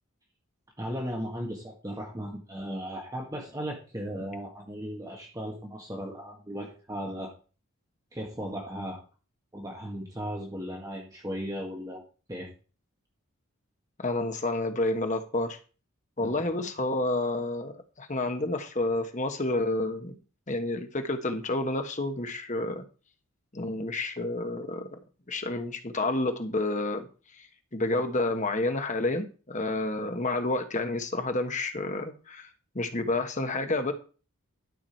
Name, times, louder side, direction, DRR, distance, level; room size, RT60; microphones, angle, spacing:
voice 1, 0.8-7.3 8.1-9.0 9.5-12.0 12.3-12.5 16.2-16.4, equal, 15° right, -1 dB, 1.6 m, -36 dB
voice 2, 14.0-15.6 16.2-20.2 20.5-22.8 23.5-24.9 25.3-27.1 27.4-27.5 27.7-32.5 32.7-33.9, left 2 dB, 35° left, 6 dB, 1.2 m, -29 dB
12.0 x 6.0 x 4.5 m, 0.36 s
head